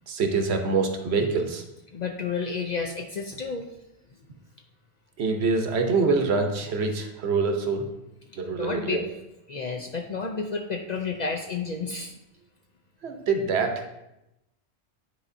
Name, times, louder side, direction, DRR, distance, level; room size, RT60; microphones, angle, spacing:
voice 1, 0.1-1.6 5.2-7.8 8.4-9.0 13.0-13.8, right 4 dB, 70° right, 4 dB, 1.0 m, -25 dB
voice 2, 1.9-3.7 8.4-9.0 9.5-12.1, left 4 dB, 55° left, 3 dB, 0.5 m, -31 dB
9.6 x 4.4 x 2.6 m, 0.91 s
omnidirectional pair, 1.1 m